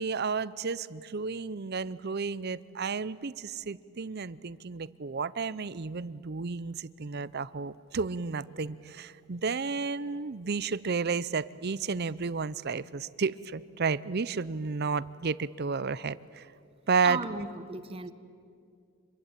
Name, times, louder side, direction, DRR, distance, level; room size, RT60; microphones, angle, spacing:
voice 1, 0.0-16.5 16.9-17.2, right 5 dB, 45° right, 18 dB, 0.6 m, -32 dB
voice 2, 17.0-18.1, right 3 dB, 25° right, 11 dB, 1.0 m, -35 dB
26.0 x 22.5 x 9.0 m, 2.4 s
head